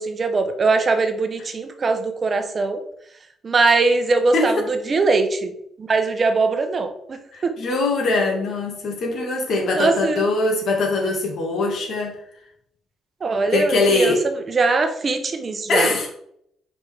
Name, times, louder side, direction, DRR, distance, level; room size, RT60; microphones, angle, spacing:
voice 1, 0.0-2.8 3.4-5.5 5.8-7.5 9.8-10.2 13.2-14.1 14.5-15.9, right 3 dB, 40° right, 7 dB, 0.8 m, -21 dB
voice 2, 4.3-4.6 7.3-12.2 13.5-14.2 15.7-16.1, left 2 dB, 65° left, 0 dB, 2.0 m, -22 dB
5.3 x 5.1 x 3.5 m, 0.72 s
cardioid pair, 90°, 0 cm